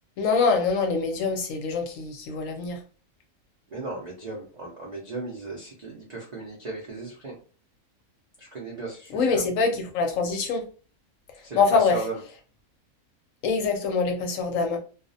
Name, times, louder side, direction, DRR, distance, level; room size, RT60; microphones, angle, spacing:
voice 1, 0.2-2.8 9.1-10.7 11.3-12.1 13.4-14.8, left 4 dB, 70° left, 0.9 m, -24 dB
voice 2, 3.7-7.3 8.4-9.4 11.4-12.2, right 3 dB, 65° right, 0.4 m, -36 dB
2.4 x 2.0 x 2.5 m
omnidirectional pair, 1.5 m